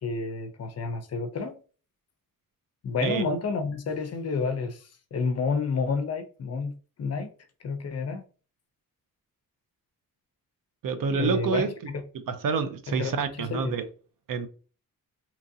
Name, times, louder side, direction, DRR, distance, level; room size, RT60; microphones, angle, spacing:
voice 1, 0.0-1.6 2.8-7.3 7.6-8.2 11.1-12.0 12.9-13.7, left 4 dB, 45° left, 0.5 m, -30 dB
voice 2, 10.8-11.7 12.3-13.9 14.3-14.5, right 6 dB, 70° right, 0.5 m, -27 dB
2.9 x 2.4 x 2.6 m
wide cardioid pair, 145°, 35 cm